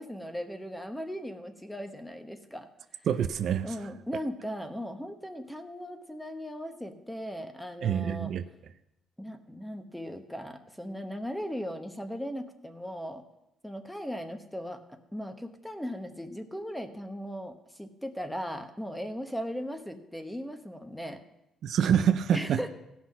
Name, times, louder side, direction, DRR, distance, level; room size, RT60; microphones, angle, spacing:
voice 1, 0.0-2.7 3.6-8.3 9.2-13.2 13.6-14.8 15.1-21.2 22.3-22.7, equal, 5° left, 7 dB, 1.1 m, -38 dB
voice 2, 3.1-3.7 7.8-8.4 21.6-22.7, right 8 dB, 60° right, 11 dB, 0.5 m, -26 dB
16.5 x 6.0 x 5.6 m, 0.88 s
cardioid pair, 110°, 0 cm